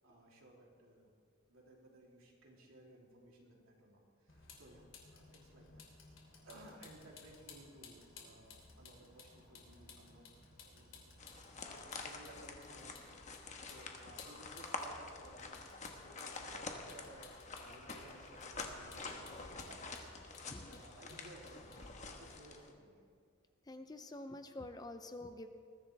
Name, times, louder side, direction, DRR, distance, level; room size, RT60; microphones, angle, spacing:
voice 1, 0.0-1.1 1.5-4.8 5.1-5.9 6.5-10.3 10.6-19.8 20.4-23.1, right 1 dB, 85° right, -2 dB, 3.2 m, -59 dB
Vehicle, 4.3-22.3, left 4 dB, 70° left, 3.1 m, -58 dB
sound 1, 11.2-22.7, left 3 dB, 35° left, 1.2 m, -48 dB
voice 2, 23.7-25.5, left 2 dB, 20° left, 8 dB, 0.6 m, -47 dB
20.5 x 14.5 x 3.4 m, 2.1 s
head